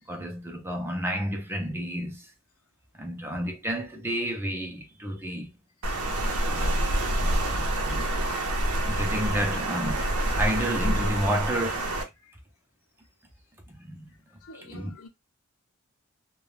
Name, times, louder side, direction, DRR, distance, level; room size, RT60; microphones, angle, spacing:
voice 1, 0.1-2.2 3.0-5.5 6.5-8.1 8.8-10.1 10.4-12.0 13.7-14.1 14.6-14.9, equal, 10° right, 0.5 m, -31 dB
Water, 5.8-12.0, right 1 dB, 85° right, 0.7 m, -27 dB
voice 2, 14.3-15.1, left 2 dB, 75° left, 0.7 m, -51 dB
2.3 x 2.3 x 3.2 m
head